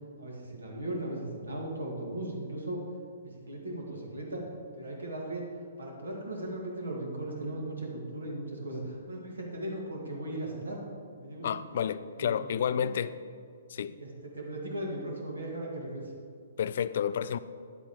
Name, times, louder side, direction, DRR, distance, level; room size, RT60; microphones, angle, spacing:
voice 1, 0.2-2.8 3.2-4.5 4.7-5.4 5.8-10.8 11.2-11.7 12.2-12.3 12.6-12.9 13.9-16.1, right 1 dB, 80° right, -1 dB, 2.1 m, -37 dB
voice 2, 11.4-13.1 13.7-13.9 16.6-17.4, left 8 dB, 55° left, 14 dB, 0.3 m, -30 dB
10.5 x 8.1 x 3.2 m, 2.2 s
figure-of-eight pair, 125°, 0 cm